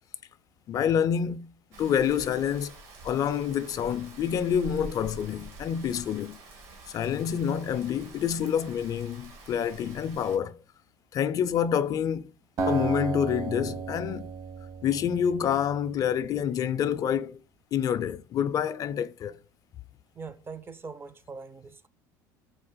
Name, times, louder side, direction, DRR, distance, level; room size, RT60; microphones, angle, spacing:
voice 1, 0.7-2.7 3.0-6.4 6.9-10.6 11.1-12.3 12.7-14.4 14.8-17.4 17.7-19.4, left 8 dB, 45° left, 0.3 m, -27 dB
Rain, 1.7-10.4, right 2 dB, 75° right, 1.4 m, -47 dB
Acoustic guitar, 12.6-15.7, right 4 dB, 45° right, 0.8 m, -33 dB
voice 2, 20.1-21.9, right 4 dB, 25° right, 0.4 m, -42 dB
4.1 x 2.4 x 3.7 m
supercardioid pair, 90°, 9 cm